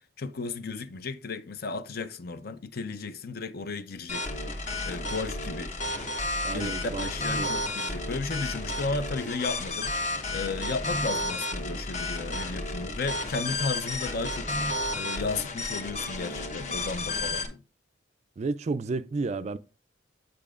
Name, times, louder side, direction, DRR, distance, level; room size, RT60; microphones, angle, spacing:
voice 1, 0.2-4.3 4.8-5.7 6.5-14.5 14.9-17.6, left 3 dB, 55° left, 0.6 m, -34 dB
sound 1, 4.1-17.5, left 2 dB, 40° left, 1.0 m, -32 dB
voice 2, 6.4-7.1 7.4-7.5 18.4-19.6, right 3 dB, 40° right, 0.3 m, -31 dB
7.6 x 7.0 x 2.4 m
head